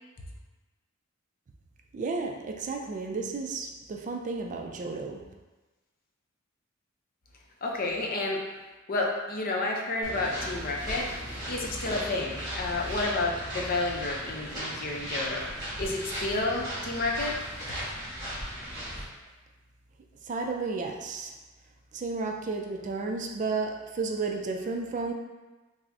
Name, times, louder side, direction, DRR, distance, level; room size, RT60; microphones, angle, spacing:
voice 1, 1.9-5.2 20.2-21.3 21.9-25.1, right 4 dB, 35° right, 3 dB, 0.3 m, -32 dB
voice 2, 7.6-8.4 8.9-11.1 11.5-15.4 15.8-17.4, left 2 dB, 45° left, 0 dB, 0.5 m, -30 dB
sound 1, 10.0-19.0, equal, 20° right, 1.2 m, -37 dB
5.8 x 2.0 x 2.6 m, 1.2 s
head